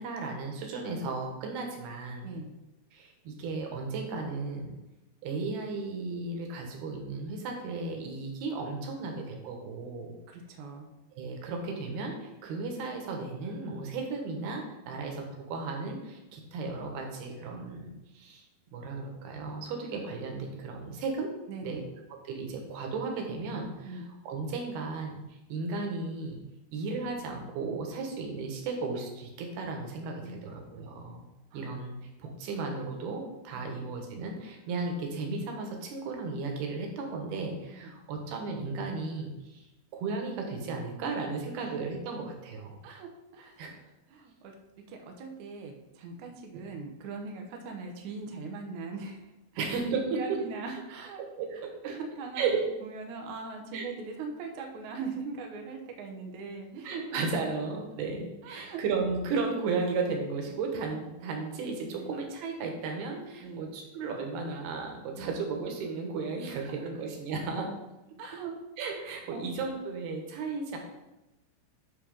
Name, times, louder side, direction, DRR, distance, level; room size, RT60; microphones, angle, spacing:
voice 1, 0.0-2.3 2.9-4.8 5.2-10.1 11.2-18.4 18.7-21.3 21.6-21.8 22.2-26.4 26.7-31.2 31.5-31.9 32.2-39.6 39.9-42.8 43.6-43.7 49.6-50.4 51.4-51.9 52.4-52.6 53.7-53.9 56.8-67.8 68.8-70.8, right 4 dB, 70° right, 2 dB, 3.0 m, -35 dB
voice 2, 10.3-10.9 14.8-15.0 21.5-21.9 23.8-24.0 30.2-30.9 31.5-31.7 33.5-33.8 37.7-37.9 41.6-41.7 42.8-43.8 44.1-44.5 44.9-49.2 49.5-49.6 50.1-51.2 51.5-52.4 52.8-56.9 58.4-58.8 61.9-62.1 63.4-63.6 65.2-65.3 66.5-67.1 68.2-68.5 69.0-69.5, right 4 dB, 85° right, 2 dB, 1.7 m, -41 dB
10.5 x 4.1 x 5.4 m, 0.97 s
omnidirectional pair, 5.1 m